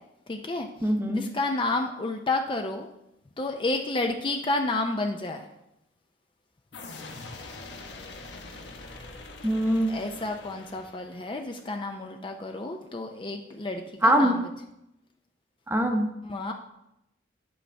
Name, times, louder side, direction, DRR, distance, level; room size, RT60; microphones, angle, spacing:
voice 1, 0.3-2.9 3.4-5.4 9.9-14.4 16.2-16.5, left 2 dB, 25° left, 4 dB, 0.5 m, -30 dB
voice 2, 0.8-1.2 9.4-9.9 14.0-14.3 15.7-16.1, right 1 dB, 15° right, 3 dB, 0.8 m, -22 dB
sound 1, 6.7-11.4, left 3 dB, 80° left, 1.1 m, -43 dB
9.3 x 7.7 x 3.3 m, 0.86 s
head